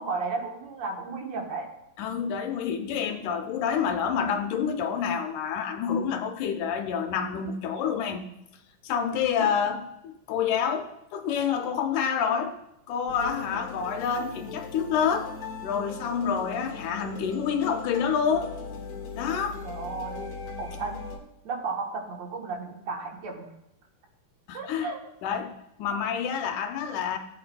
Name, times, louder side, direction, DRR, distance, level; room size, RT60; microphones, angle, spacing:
voice 1, 0.0-1.7 9.4-9.7 19.5-20.3 20.6-21.1 21.4-23.5 24.5-25.0, right 4 dB, 60° right, 0 dB, 2.2 m, -34 dB
voice 2, 2.0-8.2 8.8-12.6 12.9-15.3 15.6-18.5 19.1-19.6 24.5-24.9 25.2-27.2, left 7 dB, 75° left, 5 dB, 2.1 m, -28 dB
sound 1, 13.1-21.2, left 4 dB, 55° left, 2.5 m, -39 dB
17.0 x 8.3 x 2.2 m, 0.84 s
omnidirectional pair, 3.8 m